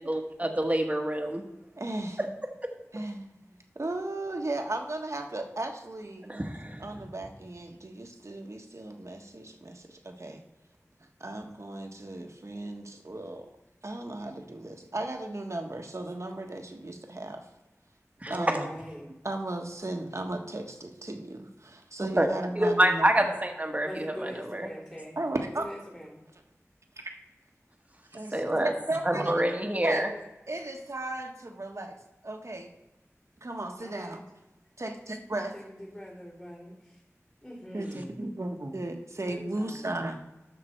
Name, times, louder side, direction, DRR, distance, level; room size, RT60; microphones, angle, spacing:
voice 1, 0.0-1.4 6.3-6.9 18.2-18.4 22.0-22.3 22.6-24.7 28.3-28.7 29.0-30.1, right 1 dB, 25° right, 3 dB, 1.4 m, -27 dB
voice 2, 1.8-2.3 2.9-6.5 6.8-10.4 11.2-13.5 13.8-17.5 18.3-18.7 19.2-23.3 25.2-25.7 27.0-27.2 28.1-29.4 29.8-30.1 30.5-31.9 32.2-32.7 33.4-34.2 34.8-35.5 37.7-40.2, right 2 dB, 60° right, 3 dB, 1.4 m, -35 dB
voice 3, 18.3-19.0 23.8-25.2 25.6-26.2 33.8-34.2 35.5-37.0 37.4-38.1 39.3-39.9, equal, 20° left, -9 dB, 3.9 m, -42 dB
13.0 x 6.0 x 4.5 m, 1.0 s
wide cardioid pair, 50°, 5 cm